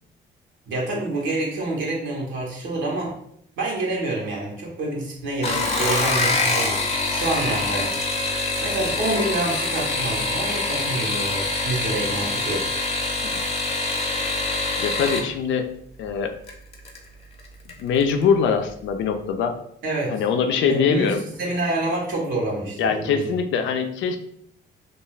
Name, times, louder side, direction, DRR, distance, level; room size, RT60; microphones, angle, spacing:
voice 1, 0.7-3.1 3.6-8.0 8.6-12.7 19.8-20.2 20.6-23.3, right 2 dB, 75° right, -3 dB, 0.9 m, -27 dB
sound 1, 5.3-15.3 16.5-17.0 17.4-17.8 18.1-18.2, left 3 dB, 30° left, 0.6 m, -25 dB
voice 2, 14.8-15.7 16.0-16.3 17.8-19.6 20.1-21.2 22.8-24.2, left 6 dB, 75° left, 7 dB, 0.4 m, -22 dB
2.3 x 2.3 x 3.1 m, 0.68 s
cardioid pair, 90°, 20 cm